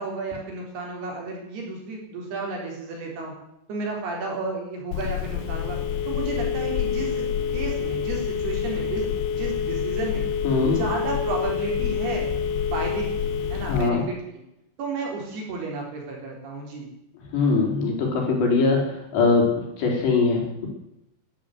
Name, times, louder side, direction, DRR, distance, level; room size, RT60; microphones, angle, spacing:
voice 1, 0.0-3.3 3.7-5.8 6.1-7.3 7.5-10.3 10.7-12.3 12.7-14.2 14.8-16.9, right 3 dB, 55° right, 0 dB, 5.7 m, -32 dB
Telephone, 4.9-13.9, left 7 dB, 80° left, 3.2 m, -27 dB
voice 2, 10.4-10.8 13.7-14.0 17.3-20.7, left 4 dB, 65° left, 0 dB, 6.2 m, -22 dB
12.5 x 12.5 x 9.4 m, 0.87 s
omnidirectional pair, 5.4 m